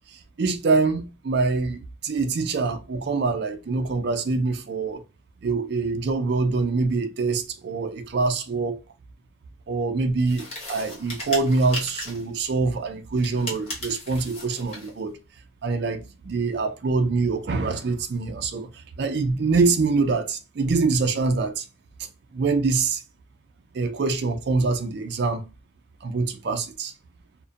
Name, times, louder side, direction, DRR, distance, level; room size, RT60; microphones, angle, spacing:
voice 1, 0.1-5.0 5.4-8.8 9.7-15.2 15.6-21.6 22.3-23.0 23.7-25.4 26.0-26.9, right 4 dB, 55° right, 0.4 m, -25 dB
sound 1, 10.2-12.3 13.1-14.9, left 1 dB, 30° left, 1.1 m, -36 dB
2.5 x 2.1 x 2.4 m
head